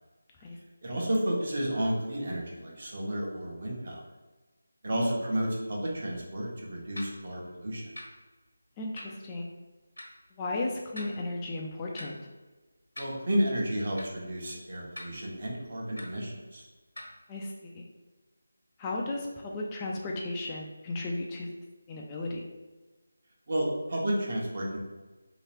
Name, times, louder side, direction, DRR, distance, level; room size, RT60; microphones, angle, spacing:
voice 1, 0.8-4.0 4.8-7.9 13.0-16.6 23.5-24.8, equal, 50° right, -3 dB, 1.0 m, -31 dB
sound 1, 7.0-7.1 8.0-8.1 9.0-9.1 10.0-10.1 11.0-11.1 12.0-12.1 13.0-13.1 14.0-14.1 15.0-15.1 16.0-16.1 17.0-17.1, left 1 dB, 85° left, 1.1 m, -41 dB
voice 2, 8.8-9.4 10.4-12.2 17.3-17.9 18.8-21.5 21.9-22.4, left 2 dB, 15° left, -1 dB, 0.4 m, -35 dB
3.1 x 3.0 x 3.0 m, 1.2 s
figure-of-eight pair, 160°, 0 cm